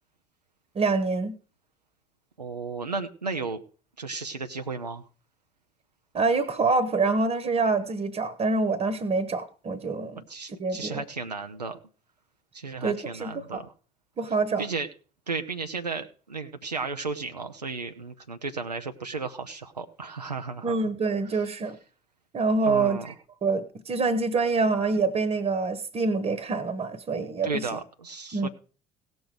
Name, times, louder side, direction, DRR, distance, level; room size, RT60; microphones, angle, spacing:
voice 1, 0.7-1.4 6.1-10.2 10.6-11.0 12.8-13.6 14.2-14.7 20.6-21.8 22.3-23.1 23.4-27.7 28.3-28.5, right 3 dB, 30° right, 14 dB, 1.1 m, -26 dB
voice 2, 2.4-3.6 4.0-5.0 10.3-11.8 12.5-13.7 14.6-14.9 15.3-20.8 21.3-21.4 22.6-23.1 27.4-28.5, right 4 dB, 90° right, 6 dB, 0.5 m, -34 dB
17.0 x 6.2 x 5.0 m, 0.39 s
figure-of-eight pair, 55°, 20 cm